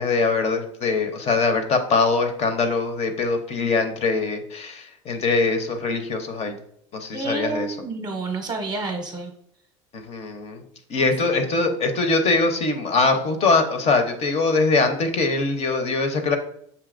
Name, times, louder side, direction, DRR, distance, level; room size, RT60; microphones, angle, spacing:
voice 1, 0.0-6.5 6.9-7.7 9.9-10.6 10.9-16.4, left 3 dB, 40° left, 7 dB, 0.8 m, -22 dB
voice 2, 7.1-9.3 11.0-11.1 11.6-11.7, right 3 dB, 25° right, 4 dB, 0.7 m, -29 dB
6.8 x 2.8 x 2.5 m, 0.68 s
hypercardioid pair, 90°, 16 cm